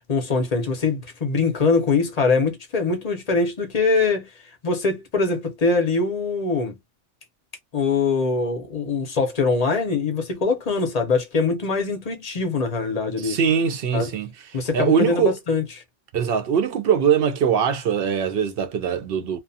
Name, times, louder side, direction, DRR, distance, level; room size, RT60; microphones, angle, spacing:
voice 1, 0.1-4.3 4.6-6.8 7.7-13.4 13.9-14.1 14.5-15.6, left 4 dB, 40° left, 0.6 m, -23 dB
voice 2, 13.2-14.3 14.7-15.4 16.1-19.4, right 7 dB, 60° right, 0.7 m, -21 dB
2.4 x 2.2 x 2.6 m
omnidirectional pair, 1.2 m